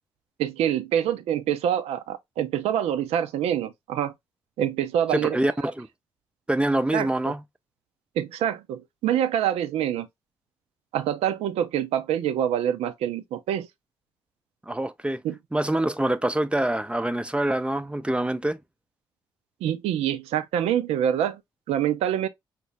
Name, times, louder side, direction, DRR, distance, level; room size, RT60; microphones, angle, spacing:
voice 1, 0.4-4.1 4.6-5.4 6.9-7.3 8.2-10.1 10.9-13.7 15.2-15.4 19.6-21.4 21.7-22.3, right 10 dB, 65° right, 0.5 m, -26 dB
voice 2, 5.1-5.9 6.5-7.4 14.7-15.2 15.5-18.6, right 1 dB, 10° right, 0.5 m, -25 dB
5.7 x 2.1 x 3.2 m
hypercardioid pair, 40°, 11 cm